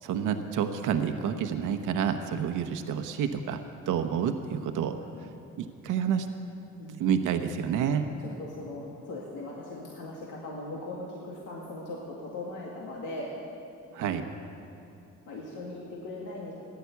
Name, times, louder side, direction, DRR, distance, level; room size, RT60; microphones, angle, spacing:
voice 1, 0.0-3.6 3.9-5.0 5.6-6.3 7.0-8.0 13.9-14.3, right 8 dB, 85° right, 7 dB, 0.9 m, -29 dB
voice 2, 6.8-7.1 8.2-13.3 15.3-16.5, left 2 dB, 85° left, -4 dB, 2.2 m, -39 dB
15.0 x 10.5 x 8.3 m, 2.8 s
cardioid pair, 90°, 30 cm